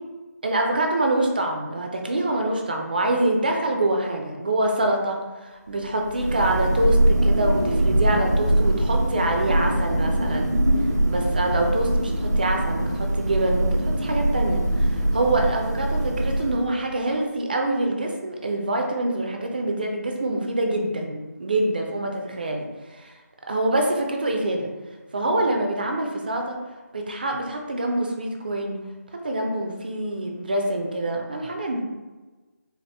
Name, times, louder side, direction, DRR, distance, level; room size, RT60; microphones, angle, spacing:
voice 1, 0.4-10.6 11.0-22.7 22.9-23.1 23.5-24.7 25.1-26.6 26.9-28.8 29.1-31.8, right 1 dB, 35° right, 2 dB, 0.4 m, -25 dB
Thunder, 5.9-16.9, right 1 dB, 90° right, 0.7 m, -22 dB
4.1 x 2.1 x 3.4 m, 1.2 s
figure-of-eight pair, 165°, 9 cm